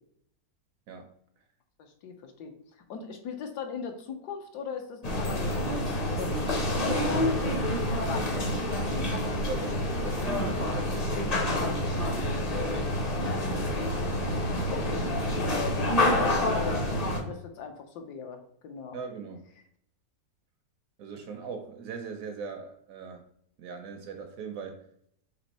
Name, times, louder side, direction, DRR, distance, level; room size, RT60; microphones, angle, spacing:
voice 1, 1.8-2.5 2.9-9.1 14.7-15.1 15.4-16.8 17.3-19.0, left 6 dB, 75° left, 5 dB, 1.2 m, -39 dB
sound 1, 5.0-17.2, left 1 dB, 35° left, 0.6 m, -28 dB
voice 2, 9.4-12.7 13.8-14.7 18.9-19.5 21.0-23.2 23.6-24.9, right 5 dB, 70° right, 5 dB, 0.8 m, -41 dB
4.3 x 3.0 x 4.1 m, 0.69 s
omnidirectional pair, 1.8 m